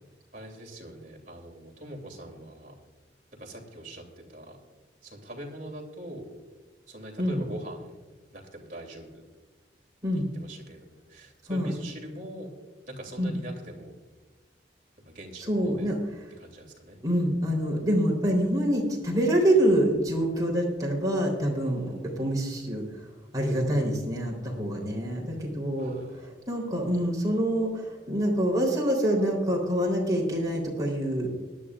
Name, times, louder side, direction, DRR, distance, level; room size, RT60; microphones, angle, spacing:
voice 1, 0.3-2.7 3.4-4.6 5.0-6.3 6.9-7.9 8.3-9.2 10.1-12.5 12.9-14.0 15.1-15.9 16.4-17.0 25.8-26.3, right 1 dB, 45° right, 1 dB, 2.7 m, -42 dB
voice 2, 15.5-16.0 17.0-22.8 23.3-31.3, right 1 dB, 20° right, -2 dB, 3.5 m, -26 dB
19.5 x 11.5 x 2.5 m, 1.3 s
head